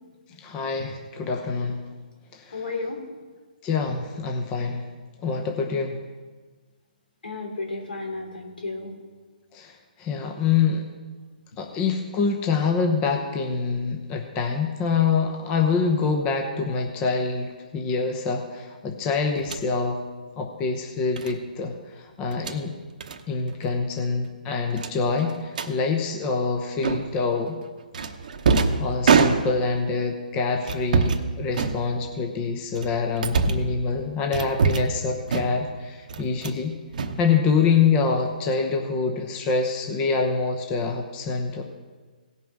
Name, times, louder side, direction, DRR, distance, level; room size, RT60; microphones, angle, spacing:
voice 1, 0.4-1.8 2.3-2.6 3.6-4.8 5.2-6.0 9.5-10.9 11.6-20.0 20.4-22.8 23.3-27.6 28.8-36.8 37.2-41.6, left 5 dB, 20° left, 3 dB, 0.8 m, -25 dB
voice 2, 2.5-3.0 7.2-9.0, left 3 dB, 85° left, 2 dB, 3.0 m, -33 dB
sound 1, 19.4-19.7 21.2-21.4 22.2-22.6 23.0-23.2 23.5-23.7 24.0-24.1 24.8-25.7 26.8-27.3 27.9-29.8 30.6-31.2 31.5-32.2 32.7-33.7 34.3-35.0 35.3-35.7 36.1-36.6 36.9-37.8, right 5 dB, 60° right, 0.9 m, -24 dB
17.5 x 5.8 x 4.6 m, 1.4 s
hypercardioid pair, 155°, 5 cm